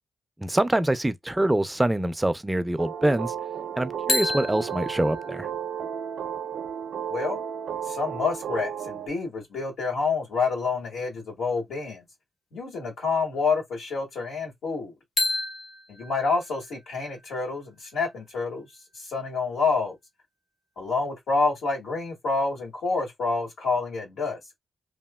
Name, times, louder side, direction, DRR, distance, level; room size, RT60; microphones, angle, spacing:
voice 1, 0.4-3.3 3.8-5.5, right 1 dB, 15° right, 0.4 m, -25 dB
sound 1, 2.8-9.1, right 8 dB, 75° right, 0.4 m, -33 dB
sound 2, 4.1-7.9 15.2-19.0, left 2 dB, 70° left, 1.2 m, -34 dB
voice 2, 7.9-12.0 12.5-14.9 15.9-18.7 19.0-20.0 20.8-24.4, left 4 dB, 85° left, 1.8 m, -28 dB
2.9 x 2.6 x 2.2 m
cardioid pair, 70°, 0 cm